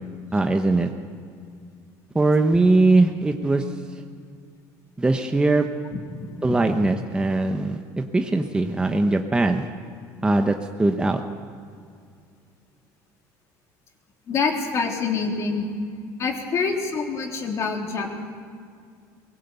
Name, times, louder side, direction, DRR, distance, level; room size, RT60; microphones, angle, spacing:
voice 1, 0.3-0.9 2.1-3.6 5.0-5.7 6.4-7.8 8.1-9.7 10.2-11.2, right 2 dB, 10° right, 5 dB, 1.0 m, -20 dB
voice 2, 6.3-6.6 14.3-15.7 16.2-18.2, left 4 dB, 40° left, 1 dB, 3.5 m, -26 dB
23.0 x 18.0 x 8.2 m, 2.2 s
cardioid pair, 120°, 7 cm